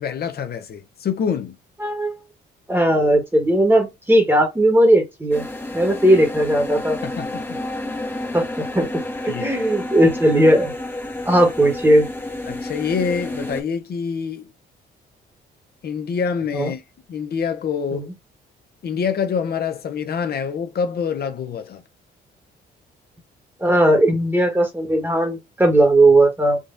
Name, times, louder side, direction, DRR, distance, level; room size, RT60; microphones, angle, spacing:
voice 1, 0.0-1.6 7.0-7.6 9.3-9.5 12.5-14.5 15.8-16.8 17.1-18.1 18.8-21.8, left 6 dB, 50° left, 0.8 m, -26 dB
voice 2, 1.8-2.1 2.7-5.4 5.7-7.0 8.3-8.9 9.4-10.7 11.3-12.1 16.5-16.7 17.9-18.0 23.6-26.6, right 1 dB, 10° right, 1.2 m, -17 dB
sound 1, 5.3-13.6, left 1 dB, 10° left, 0.9 m, -30 dB
3.7 x 2.4 x 2.5 m
cardioid pair, 90°, 20 cm